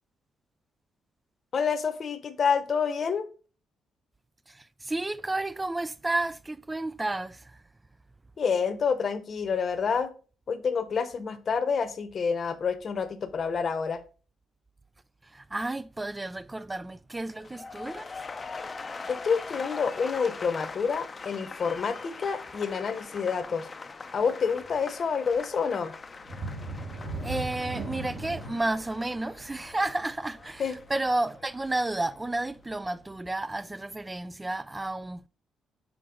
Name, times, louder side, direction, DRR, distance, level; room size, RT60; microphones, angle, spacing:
voice 1, 1.5-3.3 8.4-10.1 10.5-14.0 19.1-23.7 24.1-25.9 30.6-30.8, left 6 dB, 50° left, 0.9 m, -28 dB
voice 2, 4.5-7.6 15.2-18.2 27.1-35.3, right 2 dB, 15° right, 0.3 m, -32 dB
sound 1, 17.3-33.4 33.7-34.1, left 4 dB, 30° left, 0.6 m, -42 dB
sound 2, 26.2-31.7 32.1-32.3 32.8-32.9, right 2 dB, 60° right, 2.1 m, -38 dB
6.0 x 4.5 x 3.8 m
cardioid pair, 90°, 0 cm